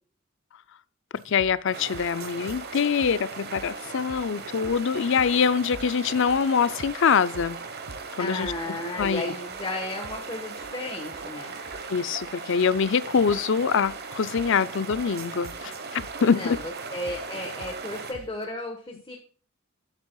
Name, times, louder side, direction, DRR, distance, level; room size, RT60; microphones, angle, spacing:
voice 1, 1.1-7.6 8.2-8.5 9.0-9.2 11.9-16.6, left 6 dB, 60° left, 0.5 m, -24 dB
sound 1, 1.2-18.4, right 2 dB, 85° right, 1.0 m, -48 dB
sound 2, 1.7-18.1, right 4 dB, 50° right, 1.1 m, -38 dB
voice 2, 8.2-11.5 14.5-14.6 16.2-19.2, left 2 dB, 20° left, 1.3 m, -34 dB
11.0 x 7.5 x 2.3 m
head